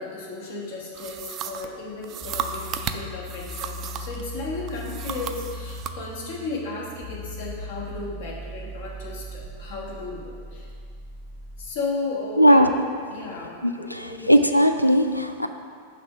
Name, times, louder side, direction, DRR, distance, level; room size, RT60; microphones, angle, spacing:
voice 1, 0.0-10.7 11.6-12.7 13.1-14.3, left 3 dB, 55° left, -3 dB, 1.3 m, -34 dB
sound 1, 0.9-4.2 4.7-6.0, right 8 dB, 35° right, 0.3 m, -34 dB
sound 2, 2.2-11.8, left 1 dB, 10° left, 0.9 m, -39 dB
voice 2, 12.4-12.7 13.6-15.5, equal, 90° left, 7 dB, 0.3 m, -18 dB
5.8 x 3.4 x 5.9 m, 2.1 s
figure-of-eight pair, 90°, 0 cm